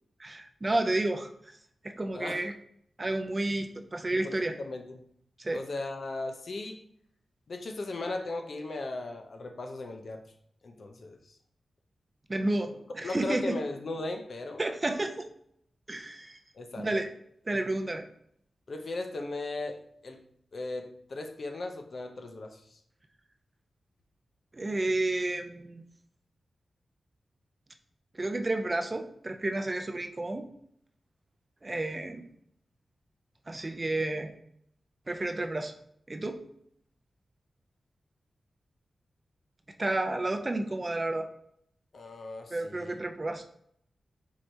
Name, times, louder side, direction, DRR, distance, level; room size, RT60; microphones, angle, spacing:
voice 1, 0.2-1.3 1.8-2.5 3.0-4.5 5.4-5.6 12.3-13.5 14.6-15.3 15.9-16.4 16.8-17.1 17.5-18.1 24.5-25.8 28.1-30.5 31.6-32.2 33.5-34.3 35.1-35.7 36.1-36.4 39.8-41.3 42.5-43.4, right 2 dB, 30° right, 6 dB, 0.4 m, -31 dB
voice 2, 2.1-2.4 4.1-5.0 5.5-6.8 7.5-10.2 10.6-11.4 13.0-14.6 16.5-16.9 18.7-20.2 20.5-22.8 41.9-43.0, left 2 dB, 55° left, 5 dB, 0.6 m, -37 dB
4.6 x 3.3 x 2.7 m, 0.69 s
wide cardioid pair, 100°, 0 cm